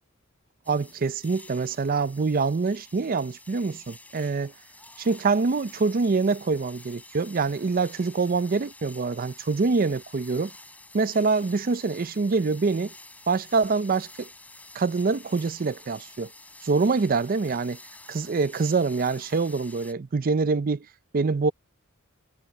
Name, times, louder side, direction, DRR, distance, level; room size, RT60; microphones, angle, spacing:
sound 1, 0.6-19.9, left 2 dB, 10° left, 4.9 m, -49 dB
voice 1, 0.7-4.5 5.0-10.5 10.9-12.9 13.3-14.3 14.7-16.3 16.6-17.8 18.1-20.8 21.1-21.5, right 4 dB, 45° right, 0.5 m, -25 dB
head